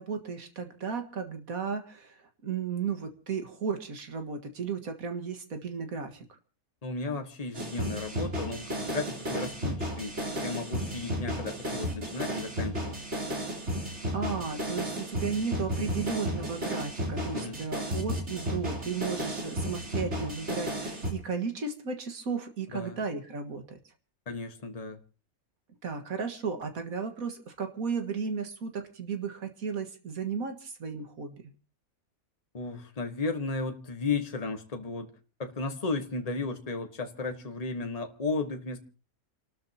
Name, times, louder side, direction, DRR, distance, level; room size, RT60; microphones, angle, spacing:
voice 1, 0.0-6.3 14.1-23.8 25.8-31.4, right 5 dB, 70° right, 6 dB, 2.1 m, -34 dB
voice 2, 6.8-13.0 17.3-17.6 22.7-23.0 24.3-25.0 32.5-35.1 35.4-38.8, left 3 dB, 25° left, 6 dB, 1.4 m, -34 dB
sound 1, 7.5-21.1, equal, 50° right, 3.8 m, -33 dB
29.5 x 13.0 x 2.9 m, 0.37 s
omnidirectional pair, 1.6 m